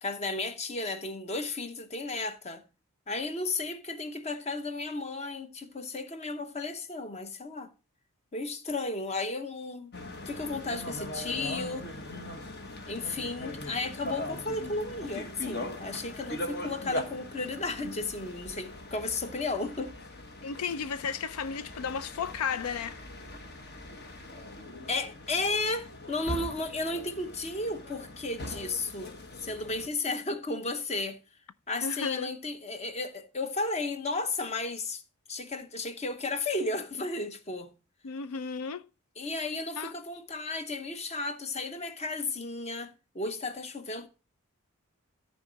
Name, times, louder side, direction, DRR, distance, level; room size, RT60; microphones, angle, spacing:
voice 1, 0.0-2.6 3.1-7.7 8.3-9.9 10.3-11.9 12.9-19.9 24.9-31.2 31.7-35.0 35.3-37.7 39.2-44.1, left 3 dB, 30° left, 0.9 m, -34 dB
sound 1, 9.9-29.9, left 1 dB, 45° left, 1.2 m, -41 dB
voice 2, 20.4-23.0 31.8-32.3 38.0-38.9 39.8-39.9, left 6 dB, 85° left, 0.5 m, -34 dB
14.0 x 4.7 x 3.9 m
head